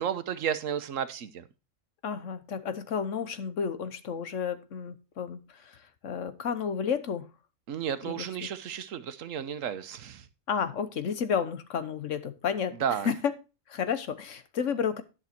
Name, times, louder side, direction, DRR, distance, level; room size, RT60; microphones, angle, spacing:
voice 1, 0.0-1.4 7.7-10.3 12.8-13.1, right 8 dB, 85° right, 12 dB, 1.2 m, -32 dB
voice 2, 2.0-5.8 6.0-7.3 8.0-8.2 10.5-12.8 13.0-13.3 13.7-15.0, left 7 dB, 75° left, 12 dB, 1.3 m, -31 dB
11.0 x 6.1 x 4.4 m, 0.30 s
omnidirectional pair, 1.3 m